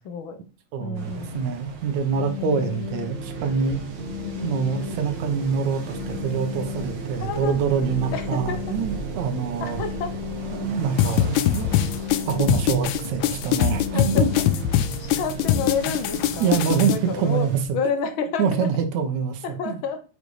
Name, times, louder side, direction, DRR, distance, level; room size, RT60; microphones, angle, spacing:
voice 1, 0.0-0.4 0.8-1.5 2.4-2.8 4.2-4.5 7.2-7.6 8.1-8.6 9.6-10.1 13.9-14.2 15.0-16.6 16.8-18.7 19.4-20.0, left 5 dB, 60° left, 1.5 m, -30 dB
voice 2, 0.7-3.8 4.4-9.8 10.5-11.8 12.3-14.3 16.4-17.5 18.4-19.8, right 6 dB, 75° right, 2.4 m, -25 dB
sound 1, 0.9-17.6, right 5 dB, 50° right, 1.5 m, -37 dB
sound 2, 2.1-15.7, left 3 dB, 30° right, 1.8 m, -35 dB
sound 3, 11.0-17.0, left 12 dB, 85° left, 2.0 m, -22 dB
7.5 x 5.3 x 4.9 m
omnidirectional pair, 3.4 m